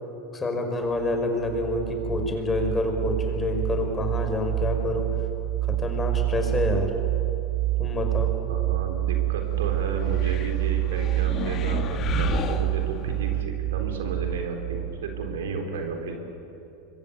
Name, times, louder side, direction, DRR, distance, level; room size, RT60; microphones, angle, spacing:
voice 1, 0.3-5.1 5.6-6.9 7.8-8.3, left 2 dB, 20° left, 4 dB, 5.5 m, -27 dB
sound 1, 1.0-15.5, right 17 dB, 40° right, 1.5 m, -28 dB
voice 2, 8.5-16.2, right 3 dB, 70° right, 4 dB, 3.7 m, -33 dB
sound 2, 10.1-13.4, left 7 dB, 40° left, 1.6 m, -33 dB
25.5 x 22.0 x 9.3 m, 3.0 s
figure-of-eight pair, 85°, 0 cm